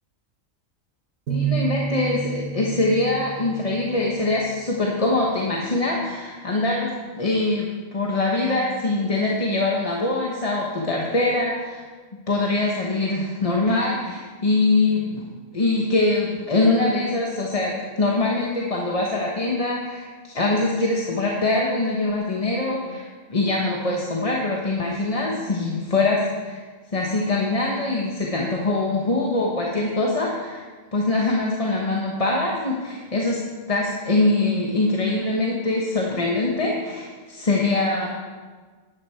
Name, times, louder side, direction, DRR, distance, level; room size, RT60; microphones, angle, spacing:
voice 1, 1.3-11.8 12.1-15.3 15.5-23.0 23.3-26.6 26.9-30.6 30.9-33.4 33.7-38.1, left 2 dB, 30° left, -2 dB, 1.1 m, -23 dB
sound 1, 1.3-5.0, right 6 dB, 80° right, 1.6 m, -30 dB
11.5 x 10.0 x 4.5 m, 1.4 s
omnidirectional pair, 1.4 m